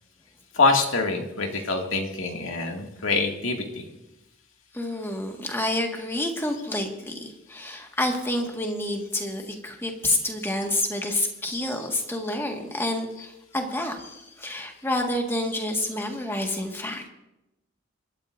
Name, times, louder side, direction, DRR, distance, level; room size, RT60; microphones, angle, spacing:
voice 1, 0.6-3.8, left 3 dB, 85° left, 1 dB, 2.2 m, -25 dB
voice 2, 4.7-17.1, left 1 dB, 10° left, 2 dB, 1.7 m, -28 dB
27.5 x 12.5 x 2.6 m, 0.93 s
head